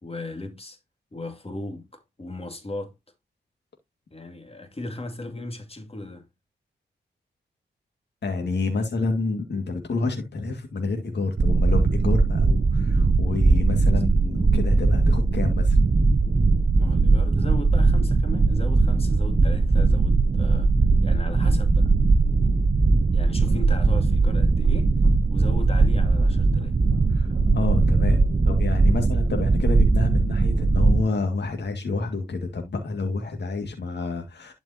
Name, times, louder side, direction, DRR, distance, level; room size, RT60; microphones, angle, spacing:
voice 1, 0.0-0.8 1.1-2.9 4.1-6.3 13.9-14.1 16.8-20.7 21.0-21.9 23.1-25.0 25.3-26.8, left 2 dB, 30° left, 2.3 m, -36 dB
voice 2, 8.2-15.8 27.1-34.5, left 3 dB, 65° left, 2.0 m, -28 dB
sound 1, 11.4-31.0, right 3 dB, 35° right, 0.8 m, -20 dB
sound 2, 23.0-31.1, equal, 10° left, 5.1 m, -40 dB
11.5 x 5.2 x 2.8 m
cardioid pair, 60°, 19 cm